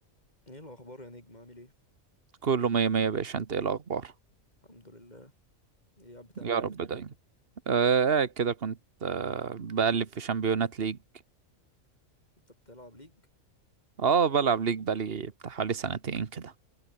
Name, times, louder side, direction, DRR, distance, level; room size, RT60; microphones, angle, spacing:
voice 1, 0.5-1.7 4.6-5.3 6.0-6.6 12.5-13.2, left 1 dB, 30° left, 6.3 m, -49 dB
voice 2, 2.4-4.1 6.4-7.1 7.7-11.0 14.0-16.5, right 6 dB, 50° right, 1.5 m, -28 dB
omnidirectional pair, 1.4 m